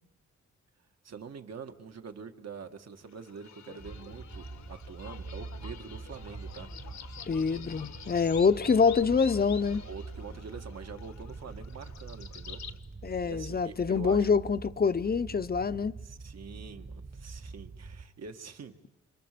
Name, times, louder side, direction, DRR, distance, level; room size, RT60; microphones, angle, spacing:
voice 1, 1.0-6.7 7.5-7.6 9.8-12.6 13.2-14.3 16.0-18.7, right 5 dB, 60° right, 1.9 m, -45 dB
sound 1, 3.1-12.8, left 7 dB, 70° left, 1.4 m, -48 dB
sound 2, 3.8-18.1, right 4 dB, 30° right, 1.4 m, -44 dB
voice 2, 7.3-9.8 13.0-15.9, left 5 dB, 30° left, 0.8 m, -26 dB
28.0 x 27.0 x 6.9 m
cardioid pair, 100°, 29 cm